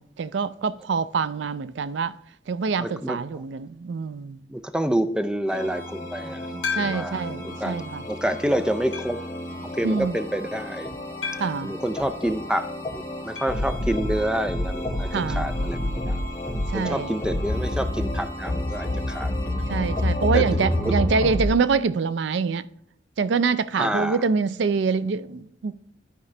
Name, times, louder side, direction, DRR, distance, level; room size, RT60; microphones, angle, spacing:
voice 1, 0.0-2.2 2.5-4.4 6.5-8.0 9.8-10.2 11.4-11.7 15.1-15.5 16.7-17.1 19.7-22.6 23.2-25.9, right 5 dB, 75° right, 0.4 m, -25 dB
voice 2, 2.8-3.4 4.5-6.5 6.8-7.8 8.1-9.2 9.7-10.9 11.6-16.2 16.7-19.7 20.3-21.0 23.8-24.2, right 1 dB, 5° right, 0.4 m, -28 dB
sound 1, 5.5-21.5, left 1 dB, 15° left, 1.9 m, -29 dB
sound 2, 6.6-7.3 7.9-8.0 8.9-9.3 11.2-11.7 13.4-13.7 13.9-14.0 14.3-14.4 16.4-16.5, left 6 dB, 80° left, 1.7 m, -32 dB
12.0 x 4.9 x 3.2 m
head